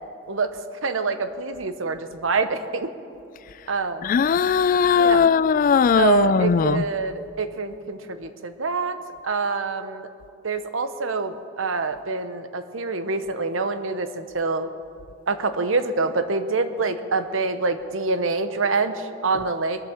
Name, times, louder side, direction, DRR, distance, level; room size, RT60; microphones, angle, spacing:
voice 1, 0.3-2.9 3.7-4.1 4.9-5.2 6.0-9.0 9.2-10.1 10.4-14.7 15.3-19.9, right 4 dB, 85° right, 10 dB, 0.9 m, -26 dB
voice 2, 4.0-6.8, left 6 dB, 45° left, 18 dB, 0.3 m, -19 dB
21.5 x 8.0 x 7.2 m, 2.4 s
head